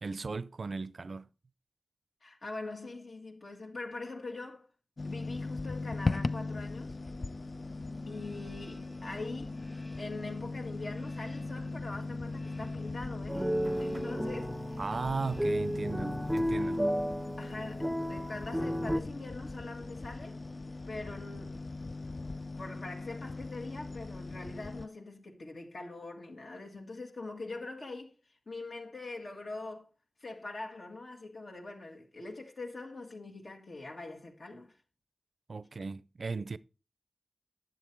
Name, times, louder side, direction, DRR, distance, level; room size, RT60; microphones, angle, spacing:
voice 1, 0.0-1.3 14.8-16.9 35.5-36.6, right 4 dB, 70° right, 0.4 m, -36 dB
voice 2, 2.2-4.6 5.0-7.0 8.1-9.6 10.0-13.5 13.8-14.8 17.4-20.4 20.9-21.7 22.6-29.9 30.2-34.8, left 3 dB, 70° left, 1.6 m, -43 dB
sound 1, 5.0-24.9, left 3 dB, 45° left, 0.4 m, -39 dB
sound 2, 7.6-17.5, left 1 dB, 25° left, 1.5 m, -52 dB
sound 3, 13.3-19.0, equal, 10° right, 0.5 m, -33 dB
10.0 x 7.4 x 4.5 m
wide cardioid pair, 85°, 0 cm